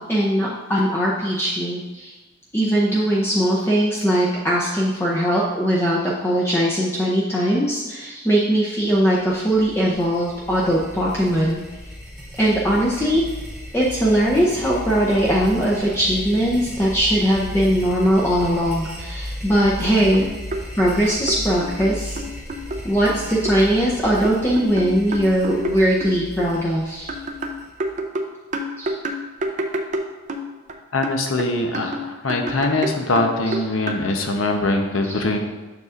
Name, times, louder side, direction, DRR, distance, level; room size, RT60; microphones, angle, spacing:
voice 1, 0.1-2.1 2.5-11.6 12.4-13.2 13.7-20.3 20.8-22.2 22.8-27.1 28.8-28.9 35.0-35.1, equal, 15° left, -5 dB, 0.6 m, -20 dB
sound 1, 8.9-28.0, equal, 5° right, 1.1 m, -36 dB
sound 2, 20.1-20.6 21.3-22.8 23.1-23.6 24.2-26.5 27.1-30.7 31.0-34.1, right 1 dB, 35° right, 0.5 m, -28 dB
voice 2, 30.9-35.4, left 2 dB, 85° left, 4 dB, 0.8 m, -22 dB
6.7 x 6.7 x 2.5 m, 1.2 s
head